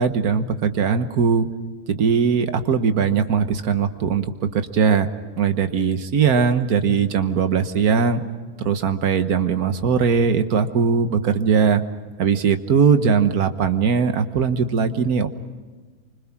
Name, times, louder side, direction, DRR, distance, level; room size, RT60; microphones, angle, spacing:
voice 1, 0.0-1.5 1.9-4.3 4.5-5.1 5.4-8.2 8.6-11.8 12.2-15.3, right 6 dB, 85° right, 8 dB, 1.6 m, -20 dB
29.0 x 25.0 x 6.0 m, 1.4 s
omnidirectional pair, 1.6 m